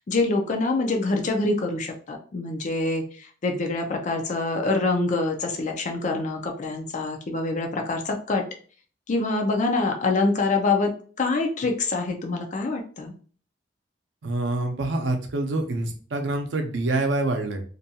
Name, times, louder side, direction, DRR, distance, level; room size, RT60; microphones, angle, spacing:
voice 1, 0.0-3.0 3.4-8.4 9.1-10.9 11.2-13.1, left 3 dB, 45° left, 3 dB, 0.4 m, -25 dB
voice 2, 14.2-17.6, right 2 dB, 85° right, 4 dB, 0.6 m, -26 dB
2.6 x 2.2 x 2.7 m, 0.42 s
head